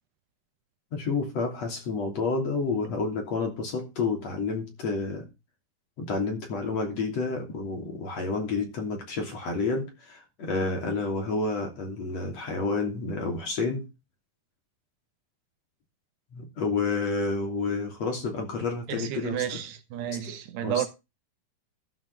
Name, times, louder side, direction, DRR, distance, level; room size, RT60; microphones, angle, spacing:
voice 1, 0.9-5.3 6.0-13.9 16.3-19.6 20.2-20.4 20.6-20.8, left 4 dB, 40° left, 3.8 m, -30 dB
voice 2, 18.9-20.9, right 10 dB, 80° right, 3.3 m, -31 dB
13.0 x 5.9 x 6.5 m
omnidirectional pair, 4.8 m